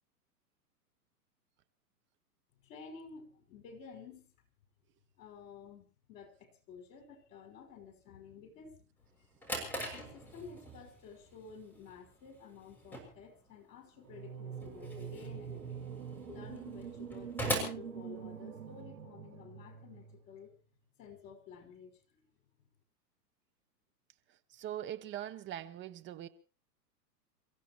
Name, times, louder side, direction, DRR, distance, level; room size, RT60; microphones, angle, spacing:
voice 1, 2.6-4.3 5.2-8.9 9.1-9.2 9.9-15.9 16.3-20.5 21.0-22.2, left 6 dB, 55° left, 5.6 m, -52 dB
Drawer open or close, 9.1-18.8, right 1 dB, 5° left, 6.6 m, -42 dB
sound 1, 14.0-20.2, right 7 dB, 85° right, 5.3 m, -45 dB
voice 2, 24.5-26.3, right 12 dB, 25° right, 1.0 m, -41 dB
29.0 x 15.5 x 3.0 m
hypercardioid pair, 130°, 48 cm